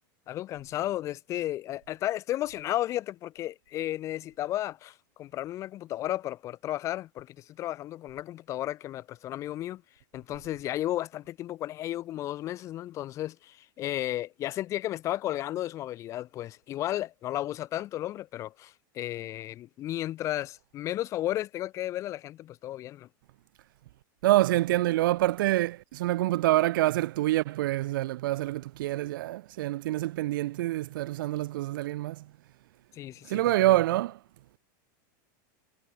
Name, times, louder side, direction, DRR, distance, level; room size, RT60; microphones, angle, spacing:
voice 1, 0.3-9.8 10.1-23.1 32.9-33.8, left 14 dB, 25° left, 1.2 m, -33 dB
voice 2, 24.2-32.3 33.2-34.2, right 16 dB, 80° right, 0.4 m, -26 dB
supercardioid pair, 165°, 11 cm